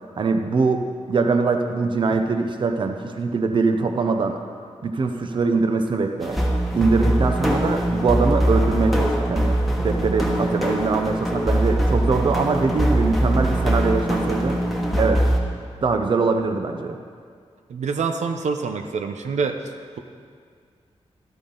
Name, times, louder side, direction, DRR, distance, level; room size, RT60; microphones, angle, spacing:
voice 1, 0.2-4.4 4.8-6.4 6.7-14.6 15.0-15.3 15.8-17.0, right 4 dB, 45° right, 5 dB, 0.7 m, -22 dB
sound 1, 6.2-15.4, right 1 dB, ahead, 1.2 m, -22 dB
voice 2, 17.7-19.6, right 5 dB, 90° right, 6 dB, 0.8 m, -26 dB
13.0 x 12.5 x 3.9 m, 2.1 s
wide cardioid pair, 170°, 12 cm